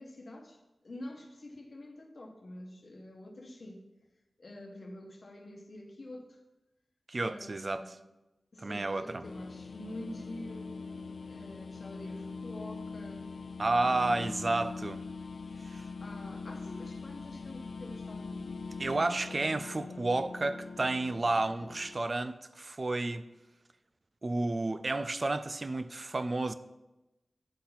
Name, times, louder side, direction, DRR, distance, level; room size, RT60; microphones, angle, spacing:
voice 1, 0.0-3.8 4.4-6.4 7.2-8.0 8.5-10.7 11.3-13.3 13.8-14.3 16.0-18.6 19.3-19.4, left 1 dB, 55° left, 1.0 m, -47 dB
voice 2, 7.1-7.9 8.6-9.2 13.6-15.0 15.7-15.8 18.8-23.2 24.2-26.5, right 2 dB, 45° right, 0.4 m, -31 dB
sound 1, 9.2-22.0, left 4 dB, 80° left, 0.4 m, -42 dB
9.9 x 4.2 x 4.0 m
wide cardioid pair, 80°, 0 cm